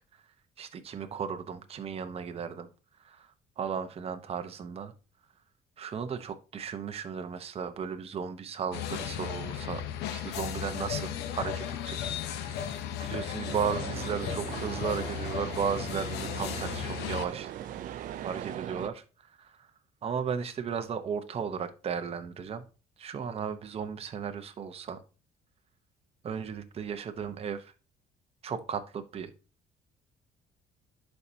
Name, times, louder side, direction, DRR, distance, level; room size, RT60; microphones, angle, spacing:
voice 1, 0.6-2.7 3.0-4.9 5.8-9.8 10.1-12.7 13.0-17.5 18.2-19.7 20.0-22.6 23.0-25.0 26.2-27.7 28.4-29.3, right 7 dB, 35° right, 8 dB, 0.8 m, -35 dB
sound 1, 8.7-17.3, left 9 dB, 85° left, 0.9 m, -35 dB
sound 2, 13.0-18.6, right 9 dB, 85° right, 1.1 m, -52 dB
sound 3, 13.5-18.9, right 11 dB, 55° right, 0.4 m, -40 dB
11.0 x 4.4 x 2.8 m, 0.34 s
cardioid pair, 110°, 17 cm